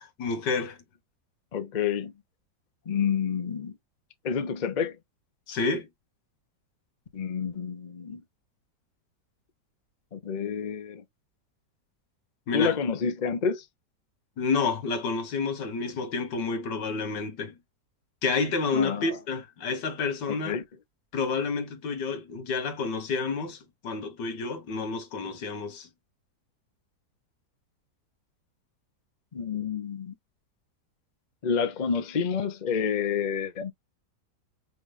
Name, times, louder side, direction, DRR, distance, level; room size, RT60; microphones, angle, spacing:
voice 1, 0.2-0.8 5.5-5.9 12.5-12.8 14.4-17.6 18.2-20.6 21.1-25.9, left 4 dB, 85° left, 1.9 m, -29 dB
voice 2, 1.5-2.1 2.9-3.7 4.2-5.0 7.1-8.2 10.1-11.0 12.5-13.6 18.7-19.1 20.3-20.6 29.3-30.1 31.4-33.7, left 6 dB, 35° left, 0.7 m, -29 dB
5.5 x 2.5 x 3.3 m
omnidirectional pair, 1.8 m